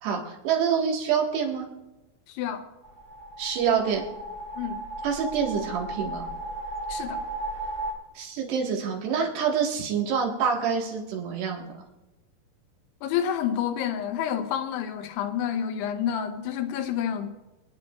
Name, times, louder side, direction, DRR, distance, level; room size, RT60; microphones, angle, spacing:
voice 1, 0.0-1.7 3.4-4.0 5.0-6.3 8.2-11.7, right 7 dB, 90° right, 3.9 m, -26 dB
voice 2, 2.3-2.7 4.6-4.8 6.9-7.2 13.0-17.3, left 9 dB, 90° left, 2.9 m, -29 dB
sound 1, 2.8-7.9, right 2 dB, 25° right, 0.8 m, -35 dB
27.0 x 9.7 x 2.5 m
omnidirectional pair, 4.6 m